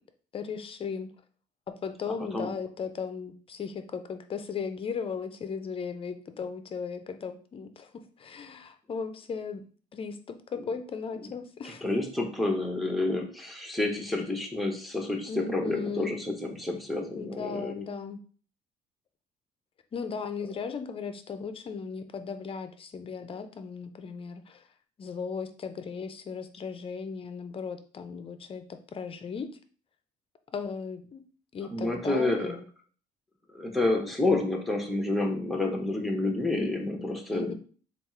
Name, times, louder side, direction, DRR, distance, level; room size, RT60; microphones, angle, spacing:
voice 1, 0.3-1.1 1.7-9.6 9.9-11.9 15.3-16.1 17.1-18.2 19.9-24.6 25.0-29.5 30.5-31.2 31.5-32.6 37.3-37.5, left 5 dB, 35° left, 9 dB, 0.5 m, -36 dB
voice 2, 11.6-17.7 31.6-32.6 33.5-37.5, left 2 dB, ahead, 2 dB, 0.8 m, -29 dB
3.5 x 2.4 x 4.2 m, 0.42 s
cardioid pair, 110°, 17 cm